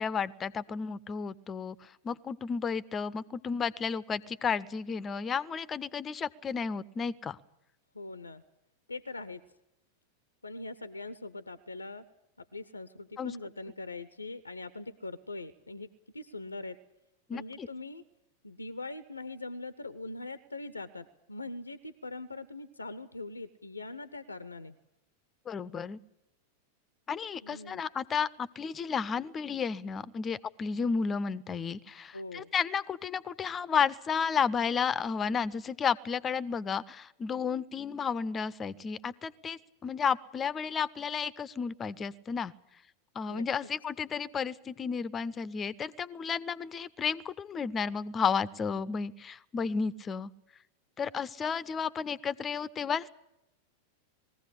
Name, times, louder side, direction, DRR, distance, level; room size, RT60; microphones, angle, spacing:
voice 1, 0.0-7.4 13.2-13.4 17.3-17.7 25.5-26.0 27.1-42.5 43.1-50.3 51.0-53.1, left 6 dB, 20° left, 18 dB, 0.7 m, -32 dB
voice 2, 7.9-8.4 8.9-9.4 10.4-12.0 12.4-15.9 16.1-16.8 17.3-18.0 18.4-24.8 27.4-27.8 32.1-32.5 43.3-43.4, left 2 dB, 80° left, 15 dB, 0.7 m, -42 dB
20.5 x 15.5 x 10.0 m, 0.87 s
figure-of-eight pair, 90°, 0 cm